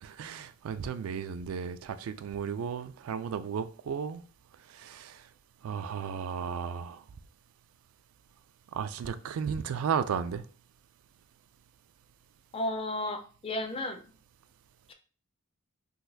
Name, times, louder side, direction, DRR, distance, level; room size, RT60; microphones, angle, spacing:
voice 1, 0.0-4.2 4.7-5.2 5.6-7.0 8.7-10.4, right 7 dB, 85° right, 0.3 m, -34 dB
voice 2, 12.5-14.0 14.9-15.0, left 1 dB, 25° left, 0.4 m, -33 dB
3.9 x 2.5 x 2.6 m
head